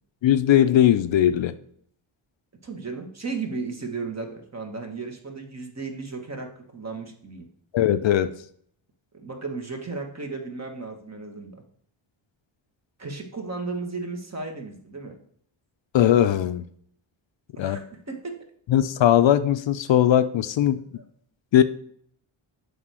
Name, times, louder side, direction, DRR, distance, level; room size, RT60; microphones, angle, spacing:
voice 1, 0.2-1.5 7.7-8.3 15.9-16.6 17.6-17.8 18.7-20.8 21.5-21.6, left 11 dB, 65° left, 12 dB, 0.6 m, -19 dB
voice 2, 2.6-7.5 9.1-11.6 13.0-15.1 17.5-18.4 21.0-21.1, right 4 dB, 30° right, 4 dB, 1.5 m, -35 dB
7.5 x 3.5 x 6.2 m, 0.62 s
cardioid pair, 100°, 50 cm